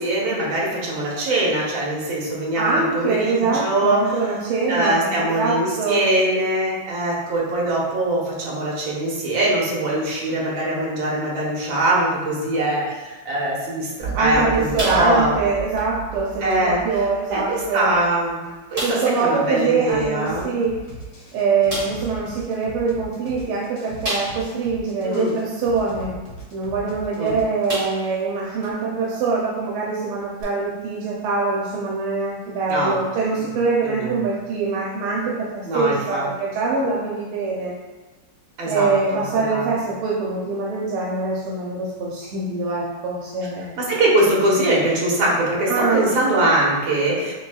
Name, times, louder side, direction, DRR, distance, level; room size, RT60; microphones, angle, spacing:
voice 1, 0.0-4.0 4.7-15.3 16.4-16.8 17.3-18.4 18.7-20.6 25.0-25.3 27.2-27.3 32.7-33.0 33.4-33.5 33.8-34.2 35.7-36.2 38.6-39.7 43.8-47.3, right 1 dB, 65° right, -4 dB, 1.8 m, -22 dB
voice 2, 2.6-6.1 14.1-17.9 18.8-20.8 21.3-26.1 26.5-37.7 38.7-43.7 45.7-46.1, right 4 dB, 85° right, -4 dB, 1.6 m, -23 dB
sound 1, 14.0-18.3, right 5 dB, 45° right, 1.1 m, -34 dB
sound 2, 14.8-15.4 15.8-15.9 16.5-16.6 17.5-17.6 17.9-18.0 18.7-19.2 20.8-20.9 21.7-22.1 24.0-24.6 25.1-25.2 27.0-27.2 27.7-28.2 28.6-28.7 30.4-30.5, equal, 30° right, 1.4 m, -30 dB
sound 3, 19.9-27.9, right 2 dB, 60° left, 0.8 m, -39 dB
6.0 x 2.8 x 2.3 m, 1.2 s
omnidirectional pair, 2.4 m